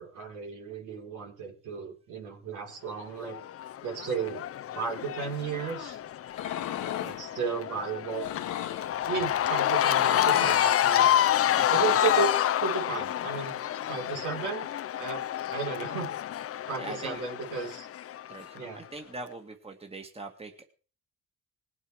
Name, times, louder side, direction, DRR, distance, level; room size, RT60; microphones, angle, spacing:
voice 1, 0.0-3.4 3.8-4.4 4.7-6.0 7.0-8.3 9.1-11.4 11.7-12.3 12.6-13.5 13.8-14.7 15.0-15.3 15.5-16.1 16.7-17.9 18.5-18.8, right 6 dB, 90° right, 0 dB, 4.4 m, -34 dB
Cheering / Crowd, 3.3-18.6, left 11 dB, 50° left, 0.5 m, -28 dB
sound 1, 6.3-7.2 8.1-9.0 9.7-10.7, left 11 dB, 85° left, 1.3 m, -35 dB
voice 2, 16.5-17.2 18.3-20.7, right 3 dB, 20° right, 4 dB, 1.9 m, -42 dB
19.5 x 8.0 x 4.8 m, 0.39 s
cardioid pair, 90°, 30 cm